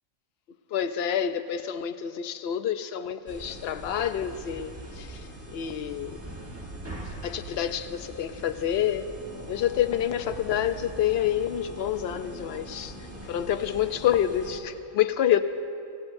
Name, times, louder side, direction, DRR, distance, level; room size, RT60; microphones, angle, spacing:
voice 1, 0.7-6.2 7.2-9.1 9.5-12.9 13.2-15.4, left 10 dB, 60° left, 0.8 m, -28 dB
sound 1, 3.3-14.6, right 1 dB, 10° right, 1.3 m, -42 dB
26.0 x 16.5 x 2.6 m
omnidirectional pair, 1.3 m